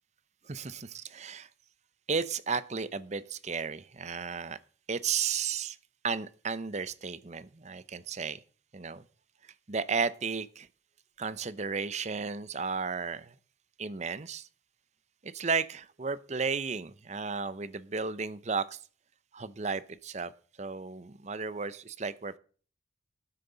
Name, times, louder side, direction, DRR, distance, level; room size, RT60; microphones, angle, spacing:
voice 1, 0.5-1.5 2.1-4.6 4.9-5.8 6.0-8.4 8.7-9.0 9.7-10.7 11.2-13.3 13.8-14.5 15.2-18.8 19.3-20.3 20.6-22.4, right 5 dB, 35° right, 0.7 m, -34 dB
12.5 x 10.0 x 3.9 m
head